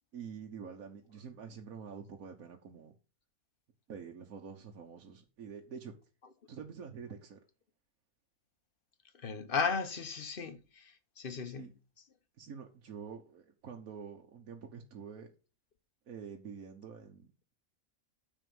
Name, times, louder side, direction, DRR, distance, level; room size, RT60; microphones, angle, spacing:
voice 1, 0.1-3.0 3.9-5.9 6.5-7.4 11.4-11.7 12.4-15.3 16.1-17.3, right 6 dB, 80° right, 1.6 m, -47 dB
voice 2, 9.2-11.7, left 5 dB, 40° left, 1.2 m, -35 dB
9.4 x 4.8 x 7.1 m
omnidirectional pair, 1.5 m